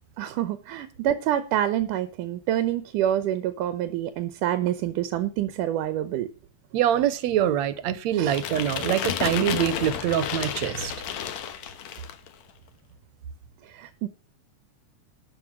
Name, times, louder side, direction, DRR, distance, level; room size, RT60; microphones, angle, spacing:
voice 1, 0.2-6.3 8.2-8.4 13.6-14.1, right 12 dB, 90° right, 2.5 m, -27 dB
voice 2, 6.7-10.9, right 10 dB, 70° right, 2.1 m, -24 dB
sound 1, 8.3-12.3, left 9 dB, 65° left, 2.4 m, -31 dB
13.0 x 5.8 x 7.5 m
omnidirectional pair, 3.6 m